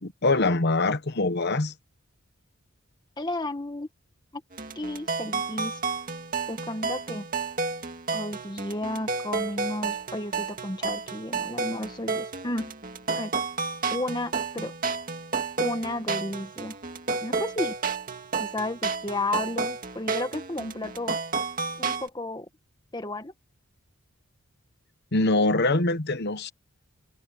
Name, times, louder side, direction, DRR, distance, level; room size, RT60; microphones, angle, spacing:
voice 1, 0.0-1.7 25.1-26.5, left 2 dB, 50° left, 1.1 m, -24 dB
voice 2, 3.2-3.9 4.7-5.8 6.5-7.3 8.1-12.7 13.2-13.3 13.9-14.7 15.6-16.8 17.2-17.7 18.4-21.2 21.8-22.5 22.9-23.3, left 1 dB, 20° left, 1.4 m, -32 dB
sound 1, 4.5-22.1, right 4 dB, 40° right, 2.2 m, -31 dB
head